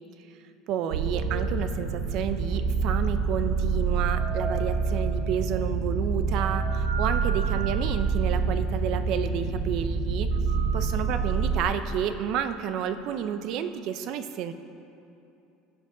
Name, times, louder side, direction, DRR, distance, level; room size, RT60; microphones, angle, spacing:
voice 1, 0.7-10.3 10.7-14.5, right 9 dB, 60° right, 10 dB, 0.6 m, -30 dB
sound 1, 0.9-11.6, right 5 dB, 80° right, 1.2 m, -27 dB
14.5 x 7.9 x 3.8 m, 2.7 s
supercardioid pair, 120°, 0 cm